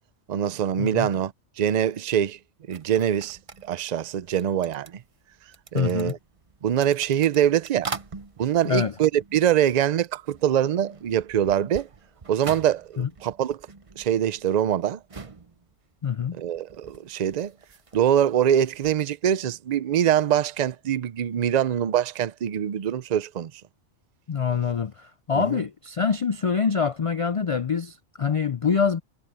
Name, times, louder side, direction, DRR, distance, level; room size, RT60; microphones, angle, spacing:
voice 1, 0.3-2.4 2.7-5.0 5.7-6.2 6.6-7.9 8.4-11.9 12.3-13.6 14.0-15.0 16.4-17.5 17.9-23.5 25.3-25.6, right 10 dB, 50° right, 0.5 m, -24 dB
sound 1, 2.7-10.0 10.3-19.1, right 4 dB, 30° right, 0.9 m, -43 dB
voice 2, 5.7-6.1 8.6-8.9 13.0-13.1 16.0-16.4 24.3-29.0, left 6 dB, 60° left, 0.3 m, -25 dB
omnidirectional pair, 1.2 m